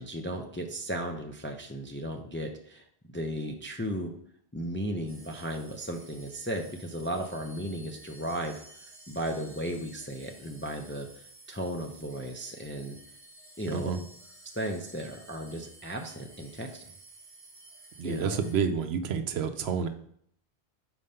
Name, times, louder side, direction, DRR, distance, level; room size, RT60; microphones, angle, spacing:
voice 1, 0.0-2.8 3.1-4.1 4.5-8.6 9.1-13.0 13.6-13.9 14.5-16.9 18.0-18.4, equal, 15° left, 3 dB, 0.4 m, -35 dB
sound 1, 5.1-18.5, right 1 dB, 35° right, 1.2 m, -53 dB
voice 2, 18.0-19.9, right 6 dB, 75° right, 7 dB, 0.9 m, -29 dB
5.2 x 4.4 x 5.4 m, 0.67 s
omnidirectional pair, 1.1 m